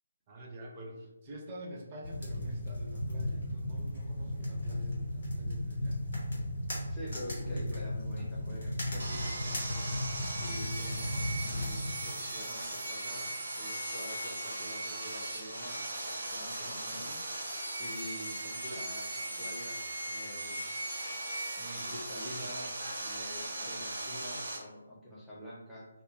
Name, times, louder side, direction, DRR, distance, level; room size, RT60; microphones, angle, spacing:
voice 1, 0.3-6.1, right 2 dB, 30° right, 0 dB, 0.6 m, -46 dB
sound 1, 2.0-11.9, left 1 dB, 55° left, 1.1 m, -35 dB
voice 2, 6.9-10.0 10.4-17.5 17.8-20.6 21.0-21.2 21.6-25.9, equal, 5° left, -9 dB, 0.7 m, -46 dB
Sawing, 9.0-24.6, right 1 dB, 65° right, 0.8 m, -38 dB
2.4 x 2.1 x 3.1 m, 1.1 s
figure-of-eight pair, 145°, 0 cm